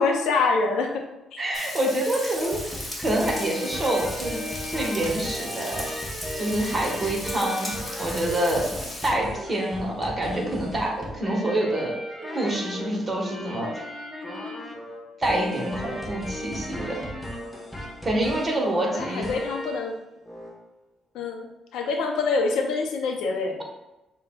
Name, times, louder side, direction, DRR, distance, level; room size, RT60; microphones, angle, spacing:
voice 1, 0.0-1.4 18.9-20.0 21.1-23.6, left 4 dB, 85° left, 3 dB, 0.5 m, -26 dB
voice 2, 1.4-4.4 4.7-5.9 6.3-7.7 8.0-8.7 9.0-11.9 12.3-13.8 15.2-17.0 18.0-19.3, right 1 dB, 25° right, -1 dB, 1.1 m, -26 dB
Frying (food), 1.5-9.1, left 1 dB, 20° left, 1.4 m, -36 dB
sound 1, 2.3-19.9 20.3-20.5, equal, 5° left, 0.8 m, -36 dB
6.3 x 2.2 x 2.2 m, 0.97 s
cardioid pair, 90°, 0 cm